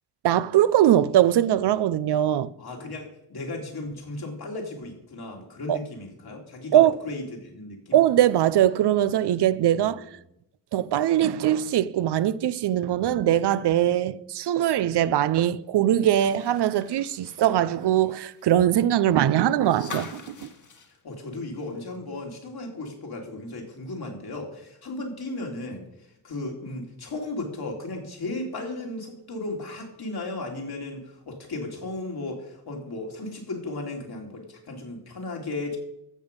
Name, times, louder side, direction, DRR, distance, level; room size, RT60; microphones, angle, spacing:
voice 1, 0.2-2.5 5.7-5.8 6.7-6.9 7.9-10.0 10.7-20.5, right 11 dB, 85° right, 0.6 m, -21 dB
voice 2, 2.6-8.0 9.7-10.1 21.0-35.8, left 2 dB, 70° left, 2.8 m, -35 dB
sound 1, 15.9-22.0 22.3-22.4 23.8-23.9, left 4 dB, 50° left, 1.7 m, -45 dB
13.5 x 7.0 x 5.2 m
cardioid pair, 70°, 39 cm